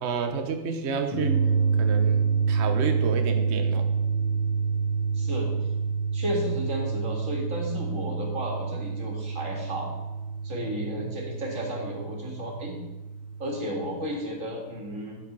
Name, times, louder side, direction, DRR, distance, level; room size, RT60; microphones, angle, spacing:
voice 1, 0.0-3.9 11.0-11.2, right 5 dB, 75° right, 6 dB, 0.6 m, -31 dB
sound 1, 1.1-14.0, right 5 dB, 80° left, 3.9 m, -28 dB
voice 2, 5.1-5.7 6.1-9.9 10.4-12.7 13.4-15.2, equal, 35° right, 0 dB, 2.7 m, -33 dB
11.5 x 7.8 x 5.3 m, 1.1 s
omnidirectional pair, 2.4 m